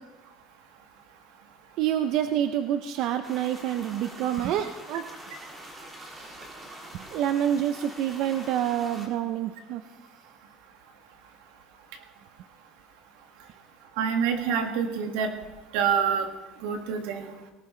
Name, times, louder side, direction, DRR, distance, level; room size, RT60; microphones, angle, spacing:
voice 1, 1.8-5.1 6.0-6.5 6.9-9.8, right 10 dB, 45° right, 9 dB, 0.6 m, -28 dB
sound 1, 3.2-9.1, right 1 dB, 15° right, 2.0 m, -44 dB
voice 2, 14.0-15.3 15.7-16.3 16.6-17.3, right 7 dB, 75° right, 5 dB, 1.9 m, -26 dB
19.0 x 18.0 x 3.2 m, 1.1 s
cardioid pair, 175°, 0 cm